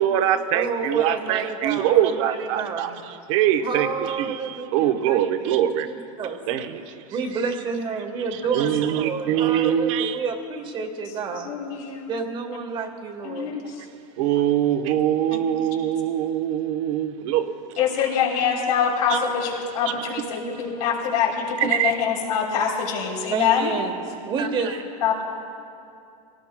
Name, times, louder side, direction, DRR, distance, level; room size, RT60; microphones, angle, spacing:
voice 1, 0.0-2.9 3.3-3.9 4.2-5.9 6.5-7.0 8.5-10.2 14.2-17.5 19.1-19.2 19.9-20.0 21.6-21.9, right 11 dB, 55° right, 8 dB, 0.9 m, -23 dB
voice 2, 0.5-3.0 3.6-5.6 5.9-6.4 7.1-11.5 12.1-13.6 23.3-23.9 24.3-24.8, right 5 dB, 25° right, 5 dB, 1.2 m, -29 dB
voice 3, 11.3-12.1 13.2-13.8 15.3-15.5 17.8-23.7 25.0-25.2, left 7 dB, 80° left, -2 dB, 3.3 m, -24 dB
23.5 x 18.0 x 2.2 m, 2.5 s
supercardioid pair, 160°, 19 cm